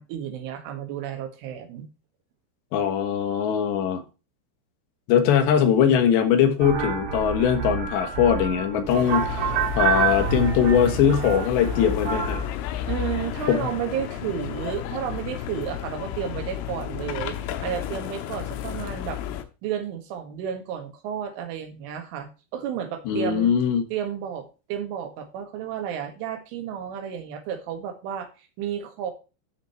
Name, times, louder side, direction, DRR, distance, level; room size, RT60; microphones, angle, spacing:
voice 1, 0.0-1.9 12.9-19.2 19.6-23.5 23.9-29.1, right 9 dB, 75° right, 4.1 m, -32 dB
voice 2, 2.7-4.0 5.1-9.5 9.8-12.4 13.5-13.7 23.1-23.8, left 8 dB, 70° left, 3.3 m, -21 dB
sound 1, 6.6-12.5, right 8 dB, 60° right, 3.8 m, -28 dB
sound 2, 8.9-19.4, left 11 dB, 85° left, 3.6 m, -32 dB
13.0 x 5.2 x 4.4 m
omnidirectional pair, 5.7 m